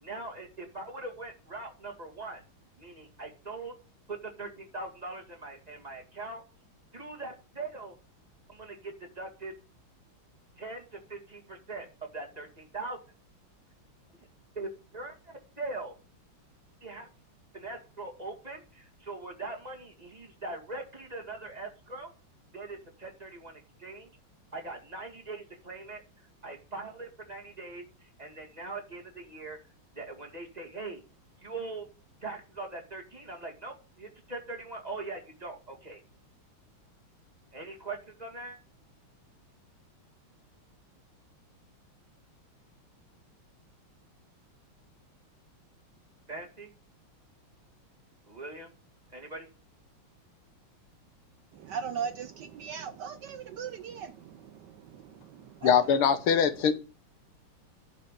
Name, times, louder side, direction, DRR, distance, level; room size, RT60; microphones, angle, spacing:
voice 1, 0.0-2.4 2.8-3.7 4.1-6.4 6.9-7.9 8.5-9.5 10.6-10.8 11.1-11.9 12.1-13.0 14.6-15.9 16.8-17.1 17.5-22.1 22.5-24.1 24.5-26.0 26.4-29.6 30.0-31.0 31.4-31.9 32.2-36.0 37.5-38.6 46.3-46.7 48.3-48.7 49.1-49.5, right 3 dB, 20° right, 2.2 m, -41 dB
voice 2, 51.5-55.9, right 7 dB, 65° right, 1.1 m, -39 dB
voice 3, 55.6-56.7, left 7 dB, 85° left, 2.1 m, -22 dB
11.0 x 5.6 x 8.3 m
omnidirectional pair, 2.3 m